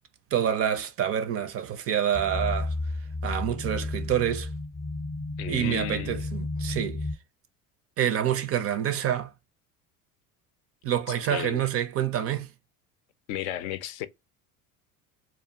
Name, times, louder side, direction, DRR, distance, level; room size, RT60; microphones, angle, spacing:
voice 1, 0.3-2.7 3.2-4.5 5.4-7.1 8.0-9.3 10.8-12.5, right 10 dB, 35° right, 0.4 m, -27 dB
sound 1, 2.1-7.2, left 2 dB, 25° left, 0.7 m, -32 dB
voice 2, 5.4-6.2 11.1-11.6 13.3-14.1, left 11 dB, 70° left, 0.5 m, -34 dB
2.5 x 2.4 x 2.6 m
hypercardioid pair, 80°, 44 cm